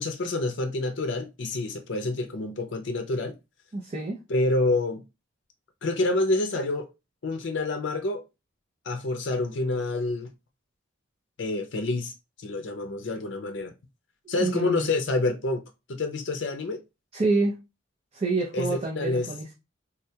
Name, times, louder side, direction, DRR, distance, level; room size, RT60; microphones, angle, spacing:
voice 1, 0.0-3.3 4.3-5.0 5.8-6.9 7.2-8.2 8.9-10.3 11.4-12.1 12.4-13.7 14.3-15.6 15.9-16.8 18.5-19.3, left 2 dB, 60° left, 0.5 m, -27 dB
voice 2, 3.7-4.2 14.3-14.9 17.1-17.5 18.1-19.5, right 3 dB, 30° right, 0.5 m, -27 dB
3.7 x 2.3 x 2.7 m
head